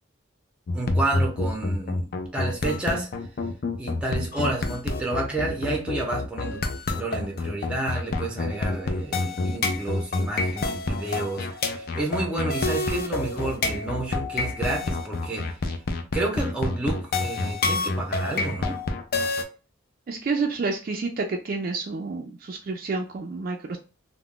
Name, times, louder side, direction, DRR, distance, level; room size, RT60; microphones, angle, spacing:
sound 1, 0.7-19.4, left 3 dB, 45° left, 0.4 m, -27 dB
voice 1, 0.7-3.1 3.8-11.5 11.7-15.6 16.1-18.8, right 2 dB, 5° right, 0 dB, 0.6 m, -30 dB
voice 2, 20.1-23.8, right 4 dB, 45° right, 4 dB, 0.3 m, -29 dB
2.3 x 2.1 x 3.5 m, 0.35 s
head